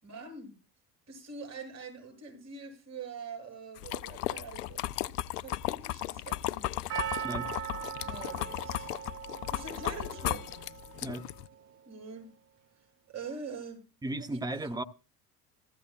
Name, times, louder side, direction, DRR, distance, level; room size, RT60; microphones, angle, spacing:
voice 1, 0.0-0.5 1.1-6.8 8.0-9.2 9.5-10.6 11.8-12.3 13.1-14.7, right 5 dB, 30° right, 7.6 m, -45 dB
sound 1, 3.8-11.5, left 14 dB, 75° left, 0.5 m, -36 dB
Percussion, 6.9-11.3 11.5-11.6, right 10 dB, 80° right, 0.8 m, -40 dB
voice 2, 14.0-14.8, right 2 dB, 10° right, 0.8 m, -35 dB
15.5 x 14.0 x 2.4 m
figure-of-eight pair, 65°, 48 cm